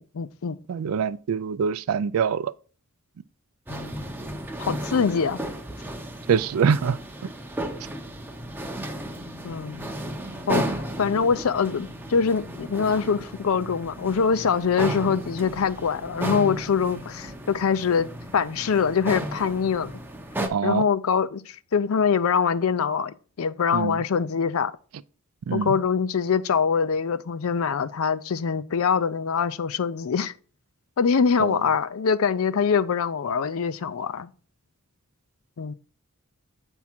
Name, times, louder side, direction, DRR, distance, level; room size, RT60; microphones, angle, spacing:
voice 1, 0.0-0.6 3.7-4.0 4.6-5.4 9.4-9.9 10.5-19.9 20.6-24.7 25.5-30.3 31.0-34.3 35.6-35.7, left 6 dB, 70° left, 0.5 m, -24 dB
voice 2, 0.7-2.5 6.3-7.0 20.5-20.9 23.7-24.0 25.5-25.8 31.4-31.6, right 6 dB, 70° right, 0.4 m, -24 dB
sound 1, 3.7-20.5, right 1 dB, 10° right, 0.6 m, -34 dB
8.3 x 3.6 x 4.4 m
head